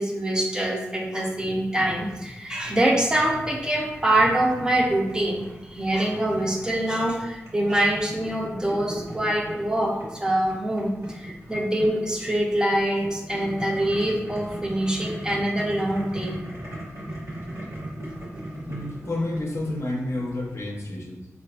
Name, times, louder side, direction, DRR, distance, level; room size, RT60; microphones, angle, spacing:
voice 1, 0.0-16.4, right 1 dB, 15° right, -1 dB, 0.5 m, -24 dB
Boiling, 2.6-20.7, right 1 dB, 65° right, 1.4 m, -39 dB
voice 2, 18.7-21.3, left 1 dB, 65° left, -1 dB, 0.6 m, -30 dB
3.8 x 2.5 x 2.3 m, 1.0 s
wide cardioid pair, 90°, 5 cm